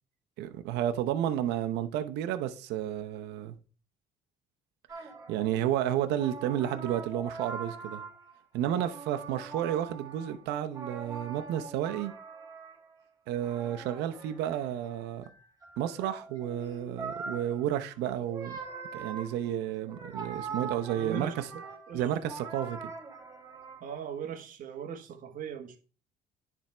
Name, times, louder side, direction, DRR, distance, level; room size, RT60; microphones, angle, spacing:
voice 1, 0.4-3.6 5.0-8.0 8.5-12.1 13.3-15.2 15.8-18.6 18.9-21.5 21.9-22.9, right 11 dB, 85° right, 0.8 m, -31 dB
sound 1, 4.9-5.7 6.1-8.4 8.7-12.9 13.3-24.0, right 4 dB, 20° right, 2.8 m, -43 dB
voice 2, 20.5-22.0 23.8-25.8, right 7 dB, 55° right, 1.4 m, -40 dB
10.0 x 3.5 x 4.4 m
cardioid pair, 110°, 17 cm